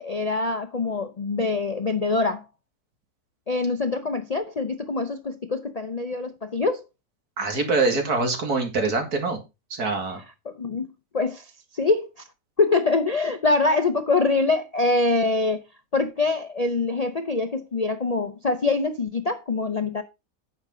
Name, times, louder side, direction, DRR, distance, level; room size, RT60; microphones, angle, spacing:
voice 1, 0.0-2.4 3.5-6.8 10.5-10.9 11.1-12.1 12.6-15.6 15.9-20.0, left 3 dB, 50° left, 0.4 m, -24 dB
voice 2, 7.4-9.4 9.7-10.2, right 3 dB, 85° right, 2.7 m, -24 dB
9.7 x 6.7 x 3.8 m
omnidirectional pair, 1.6 m